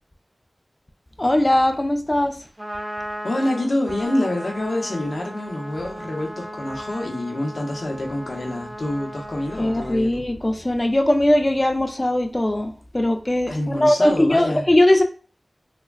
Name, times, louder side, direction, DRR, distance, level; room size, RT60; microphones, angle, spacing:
voice 1, 1.2-2.4 9.6-15.0, left 1 dB, 30° left, 0.3 m, -20 dB
Trumpet, 2.4-10.0, equal, 30° right, 0.9 m, -36 dB
voice 2, 3.2-10.2 13.5-14.6, left 1 dB, 75° left, 0.7 m, -26 dB
3.3 x 2.2 x 2.2 m
wide cardioid pair, 45°, 0 cm